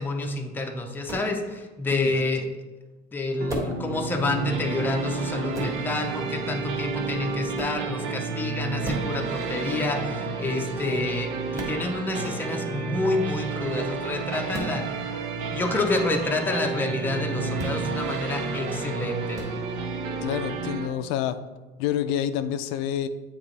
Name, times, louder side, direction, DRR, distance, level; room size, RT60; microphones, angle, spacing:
voice 1, 0.0-2.5 3.1-14.9 15.4-19.4, left 2 dB, 10° left, 3 dB, 0.5 m, -28 dB
sound 1, 1.0-1.3 3.5-3.8 5.5-5.8 7.5-7.8 8.8-9.1 11.5-11.8 14.5-14.8 17.5-17.8 19.3-19.5, right 1 dB, 15° right, 1.3 m, -33 dB
voice 2, 1.9-2.3 20.2-21.4 21.8-23.1, left 10 dB, 85° left, 10 dB, 0.4 m, -28 dB
sound 2, 3.4-20.9, right 4 dB, 75° right, 0.9 m, -31 dB
8.7 x 3.0 x 4.0 m, 1.2 s
cardioid pair, 155°, 18 cm